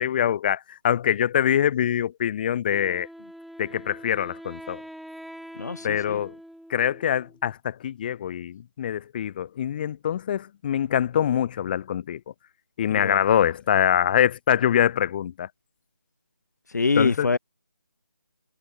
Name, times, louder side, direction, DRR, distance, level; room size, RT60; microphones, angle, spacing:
voice 1, 0.0-3.1 3.6-4.8 5.8-6.3 6.7-12.2 12.8-15.5 17.0-17.3, left 10 dB, 25° left, 2.7 m, -24 dB
Wind instrument woodwind instrument, 2.7-7.5, equal, ahead, 5.7 m, -44 dB
voice 2, 5.6-6.2 13.0-13.4 16.7-17.4, left 4 dB, 55° left, 1.6 m, -25 dB
figure-of-eight pair, 155°, 11 cm